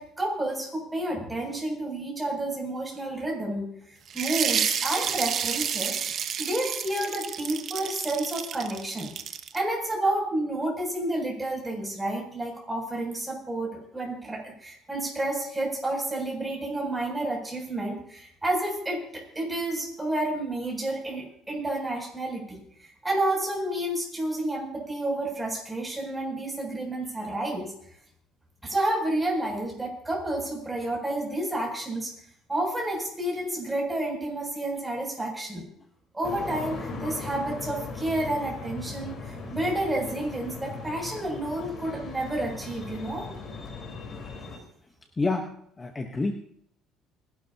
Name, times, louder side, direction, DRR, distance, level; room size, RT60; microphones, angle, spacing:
voice 1, 0.0-3.7 4.1-6.0 6.4-9.1 9.5-27.7 28.6-32.1 32.5-35.6 36.1-43.3, right 1 dB, 10° right, -1 dB, 7.6 m, -30 dB
sound 1, 4.1-9.6, right 8 dB, 50° right, 1.2 m, -30 dB
sound 2, 36.2-44.6, left 4 dB, 40° left, 4.4 m, -38 dB
voice 2, 45.2-46.3, left 3 dB, 20° left, 3 dB, 1.2 m, -28 dB
29.0 x 12.0 x 3.0 m, 0.69 s
cardioid pair, 105°, 0 cm